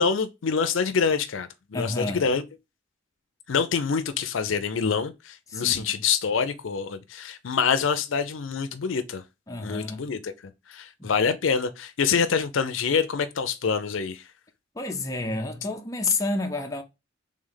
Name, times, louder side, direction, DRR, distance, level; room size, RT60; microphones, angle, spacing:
voice 1, 0.0-2.4 3.5-9.2 9.6-14.2, left 6 dB, 75° left, 0.5 m, -26 dB
voice 2, 1.7-2.2 5.5-5.9 9.5-10.1 11.0-11.1 14.7-16.8, left 3 dB, 15° left, 0.6 m, -30 dB
3.4 x 3.2 x 3.8 m
head